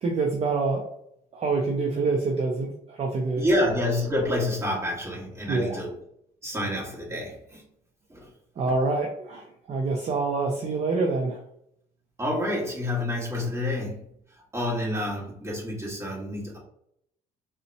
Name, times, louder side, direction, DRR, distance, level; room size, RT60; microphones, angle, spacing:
voice 1, 0.0-0.8 1.3-3.4 5.5-5.8 8.6-11.4, right 3 dB, 40° right, 0.5 m, -26 dB
voice 2, 3.4-5.9 6.4-7.6 8.1-8.3 12.2-14.1 14.5-16.6, left 1 dB, 15° right, 1.3 m, -28 dB
3.8 x 2.1 x 2.7 m
cardioid pair, 110°, 17 cm